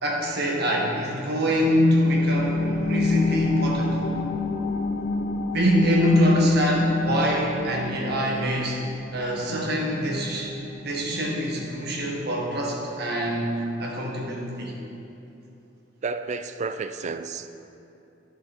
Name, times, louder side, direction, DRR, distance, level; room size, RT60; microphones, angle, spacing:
voice 1, 0.0-4.0 5.5-8.8 9.1-10.5 10.8-14.7, equal, 60° right, -2 dB, 1.6 m, -23 dB
sound 1, 1.5-12.6 13.0-13.1, left 3 dB, 50° left, 0.5 m, -32 dB
voice 2, 16.0-17.5, right 4 dB, 40° right, 10 dB, 0.4 m, -31 dB
12.5 x 6.3 x 4.3 m, 2.8 s
head